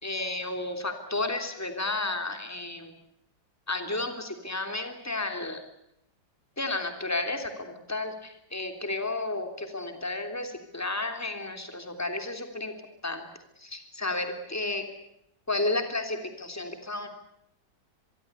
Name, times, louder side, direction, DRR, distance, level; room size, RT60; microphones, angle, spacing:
voice 1, 0.0-2.9 3.7-5.6 6.6-12.7 13.0-13.3 13.6-14.8 15.5-17.1, left 2 dB, 10° left, 6 dB, 3.3 m, -32 dB
26.0 x 22.5 x 8.1 m, 0.77 s
omnidirectional pair, 2.1 m